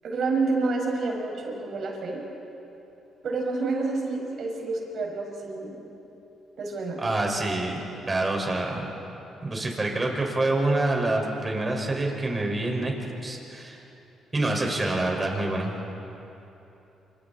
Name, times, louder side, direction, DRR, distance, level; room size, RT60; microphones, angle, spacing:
voice 1, 0.0-2.2 3.2-5.8 6.6-7.0, right 3 dB, 60° right, 0 dB, 5.8 m, -28 dB
voice 2, 7.0-8.9 9.4-12.9 13.2-13.8 14.3-15.8, right 2 dB, 25° right, 1 dB, 5.5 m, -26 dB
28.5 x 26.5 x 4.3 m, 3.0 s
supercardioid pair, 70°, 0 cm